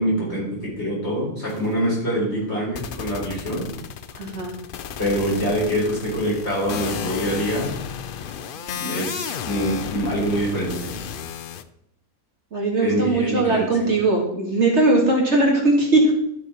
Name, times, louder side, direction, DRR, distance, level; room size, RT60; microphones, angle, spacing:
voice 1, 0.0-3.7 5.0-7.7 8.8-10.9 12.8-13.9, equal, 45° left, -5 dB, 4.5 m, -25 dB
sound 1, 1.5-1.7 2.7-11.6, left 8 dB, 75° left, 0.5 m, -33 dB
voice 2, 4.2-4.5 12.5-16.1, right 2 dB, 50° right, -1 dB, 2.2 m, -19 dB
12.0 x 6.4 x 4.3 m, 0.76 s
omnidirectional pair, 1.5 m